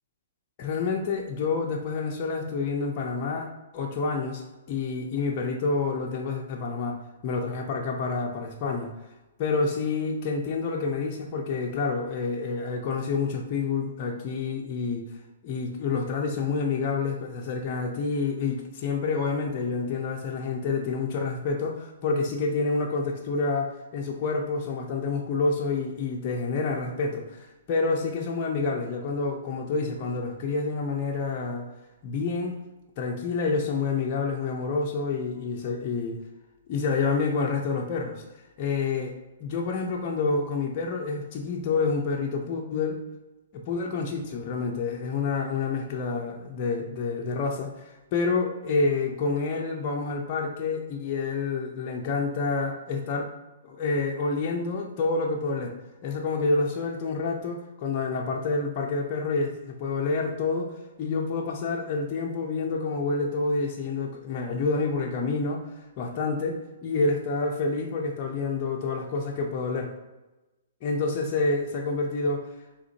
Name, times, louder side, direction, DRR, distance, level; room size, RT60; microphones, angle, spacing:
voice 1, 0.6-4.4 4.7-8.9 9.4-15.1 15.4-31.7 32.0-32.6 33.0-36.2 36.7-38.2 38.6-39.1 39.4-43.0 43.5-53.3 53.6-55.8 56.0-69.9 70.8-72.5, left 4 dB, 40° left, 0 dB, 0.7 m, -28 dB
4.9 x 3.5 x 2.8 m, 1.0 s
hypercardioid pair, 125°, 0 cm